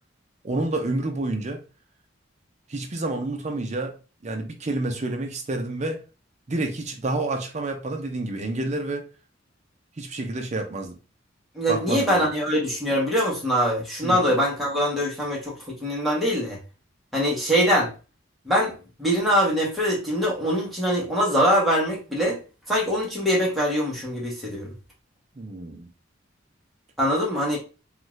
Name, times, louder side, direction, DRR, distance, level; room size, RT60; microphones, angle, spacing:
voice 1, 0.4-1.6 2.7-3.9 4.2-6.0 6.5-9.0 10.0-11.0 11.7-12.3 14.0-14.3 25.4-25.9, right 2 dB, 35° right, 0.5 m, -29 dB
voice 2, 11.6-16.6 17.1-17.9 18.4-18.7 19.0-22.4 22.7-24.7 27.0-27.6, equal, ahead, 1.0 m, -23 dB
2.6 x 2.4 x 3.1 m
head